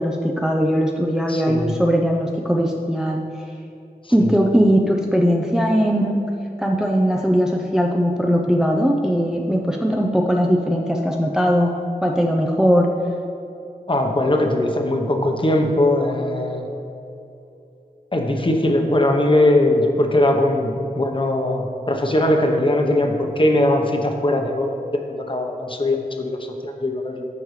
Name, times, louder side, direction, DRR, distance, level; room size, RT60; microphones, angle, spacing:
voice 1, 0.0-3.2 4.1-6.2 6.6-11.7 12.0-12.9, equal, 5° right, 0 dB, 0.6 m, -19 dB
voice 2, 1.3-1.7 4.2-4.3 13.9-16.6 18.1-24.8 25.1-27.3, left 1 dB, 35° left, 2 dB, 1.0 m, -20 dB
14.0 x 5.2 x 3.2 m, 2.8 s
wide cardioid pair, 75°, 15 cm